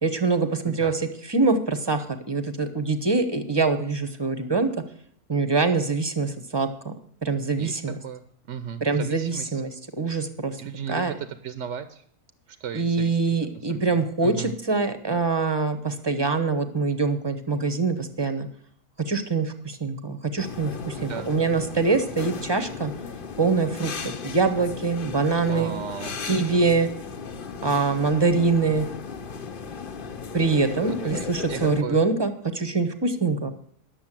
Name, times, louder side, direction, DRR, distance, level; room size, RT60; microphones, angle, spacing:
voice 1, 0.0-4.7 5.3-6.9 7.2-8.0 8.8-9.7 10.0-10.6 10.9-11.1 12.7-18.5 19.1-22.9 23.4-25.7 26.2-26.9 27.6-28.9 30.3-33.5, right 4 dB, 20° right, 8 dB, 0.8 m, -24 dB
voice 2, 7.6-9.6 10.6-12.0 12.5-13.2 13.5-14.5 21.0-21.3 25.4-26.4 30.5-32.0, right 8 dB, 60° right, 10 dB, 0.9 m, -36 dB
sound 1, 20.4-31.8, left 5 dB, 45° left, 0.8 m, -36 dB
11.0 x 7.2 x 7.4 m, 0.63 s
omnidirectional pair, 1.5 m